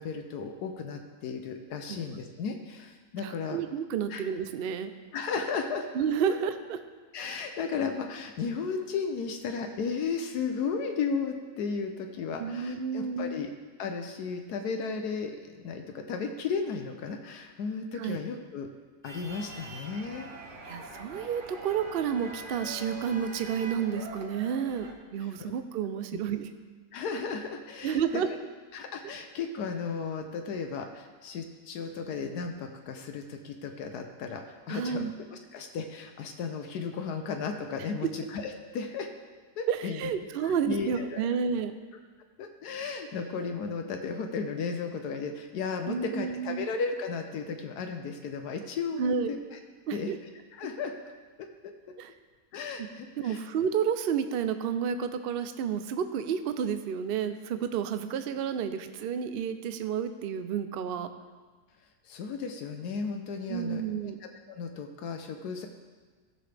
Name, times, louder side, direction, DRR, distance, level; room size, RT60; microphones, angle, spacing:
voice 1, 0.0-3.6 4.1-4.2 5.1-5.8 7.1-13.5 13.8-18.7 19.0-20.3 25.2-25.5 26.9-28.2 28.7-39.1 39.6-40.0 40.4-41.2 42.4-49.6 49.9-50.1 50.5-50.9 51.4-51.7 52.5-53.4 62.0-63.8 64.2-65.7, left 5 dB, 80° left, 5 dB, 1.2 m, -34 dB
voice 2, 3.2-4.9 5.9-6.8 12.4-13.4 18.0-18.2 20.7-26.5 27.8-28.3 34.7-35.1 37.8-38.1 39.7-41.8 45.9-46.7 49.0-49.3 49.9-50.2 52.0-52.1 52.8-52.9 53.2-61.1 63.5-64.2, right 7 dB, 85° right, 9 dB, 0.5 m, -31 dB
sound 1, 19.0-24.9, right 2 dB, 40° right, 0.9 m, -44 dB
15.5 x 6.8 x 3.3 m, 1.4 s
omnidirectional pair, 1.7 m